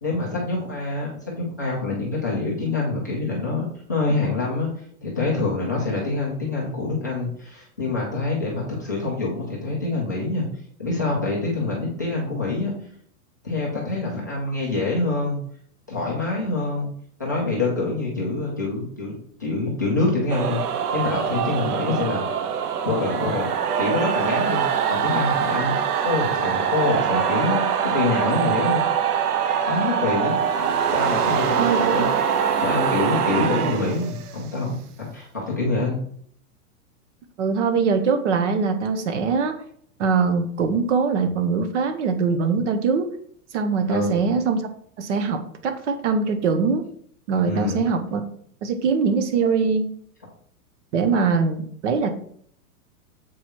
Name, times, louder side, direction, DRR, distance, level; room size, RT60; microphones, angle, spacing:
voice 1, 0.0-4.7 5.0-10.5 10.8-12.7 13.4-15.4 15.9-16.9 17.2-22.2 22.8-23.5 23.8-25.7 26.0-28.8 29.7-30.4 30.9-32.1 32.5-36.0 43.9-44.2 47.5-47.8, left 3 dB, 15° left, -7 dB, 0.4 m, -26 dB
sound 1, 20.3-34.5, right 7 dB, 85° right, 1.1 m, -23 dB
voice 2, 31.6-32.1 37.4-39.5 40.0-43.1 43.5-44.6 45.0-46.8 47.3-48.2 48.6-49.9 50.9-52.1, right 5 dB, 50° right, 7 dB, 1.2 m, -22 dB
7.6 x 4.8 x 4.4 m, 0.63 s
supercardioid pair, 175°, 45 cm